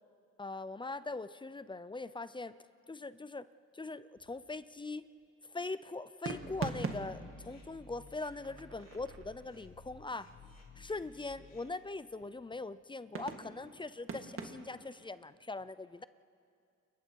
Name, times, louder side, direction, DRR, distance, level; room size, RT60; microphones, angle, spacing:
voice 1, 0.4-2.5 2.9-3.5 3.7-5.0 5.5-10.3 10.8-16.0, left 3 dB, 15° left, 15 dB, 0.5 m, -41 dB
sound 1, 4.2-4.8 6.2-9.6 11.3-11.8 12.2-12.7 13.1-14.9, right 4 dB, 45° right, 1.9 m, -43 dB
sound 2, 6.3-11.6, left 2 dB, 60° left, 4.1 m, -55 dB
29.0 x 22.5 x 4.7 m, 2.4 s
cardioid pair, 90°, 30 cm